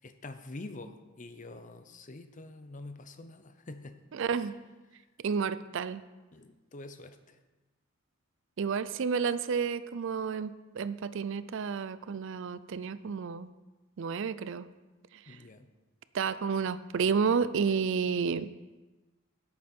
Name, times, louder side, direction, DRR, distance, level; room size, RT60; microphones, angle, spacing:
voice 1, 0.0-4.0 4.4-4.5 6.3-7.4 15.3-15.7, left 2 dB, 40° left, 9 dB, 0.7 m, -46 dB
voice 2, 4.2-4.5 5.2-6.0 8.6-13.5 14.0-14.7 15.3-15.4 16.1-18.5, right 6 dB, 65° right, 15 dB, 0.4 m, -31 dB
11.5 x 8.5 x 4.4 m, 1.2 s
head